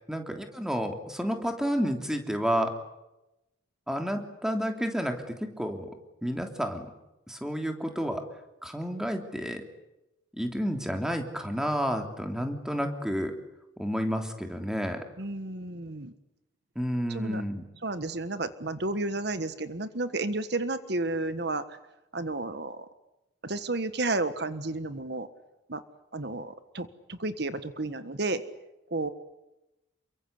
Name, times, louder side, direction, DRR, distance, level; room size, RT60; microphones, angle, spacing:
voice 1, 0.1-2.7 3.9-5.9 6.2-6.9 7.3-8.2 8.6-9.6 10.3-13.3 13.8-15.0 16.7-17.6, equal, 5° right, 4 dB, 3.2 m, -30 dB
voice 2, 15.2-16.1 17.1-17.4 17.8-21.8 22.1-22.9 23.4-25.3 25.7-25.8 26.1-28.4 28.9-29.1, right 2 dB, 60° right, 11 dB, 1.5 m, -32 dB
29.0 x 23.5 x 8.4 m, 0.92 s
head